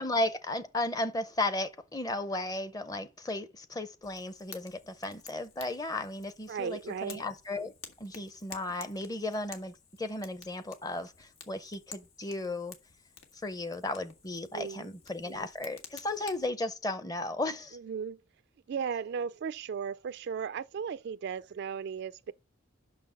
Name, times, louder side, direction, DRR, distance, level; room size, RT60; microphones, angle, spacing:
voice 1, 0.0-7.7 8.0-12.7 13.4-17.8, left 2 dB, 20° left, 0.6 m, -35 dB
Fire, 4.0-16.5, left 6 dB, 85° left, 1.5 m, -52 dB
voice 2, 6.5-7.3 14.5-14.9 15.2-15.5 17.7-18.2 18.7-22.3, right 7 dB, 55° right, 0.3 m, -36 dB
6.0 x 5.7 x 6.4 m
head